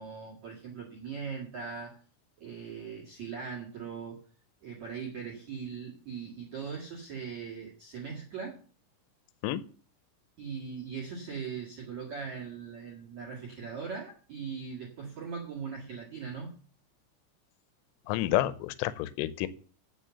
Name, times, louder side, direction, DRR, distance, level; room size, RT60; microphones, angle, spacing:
voice 1, 0.0-2.0 2.4-4.2 4.6-8.6 10.4-16.6, right 6 dB, 55° right, -3 dB, 2.0 m, -40 dB
voice 2, 18.1-19.5, left 14 dB, 80° left, 15 dB, 3.2 m, -29 dB
9.1 x 7.0 x 6.9 m, 0.41 s
omnidirectional pair, 5.9 m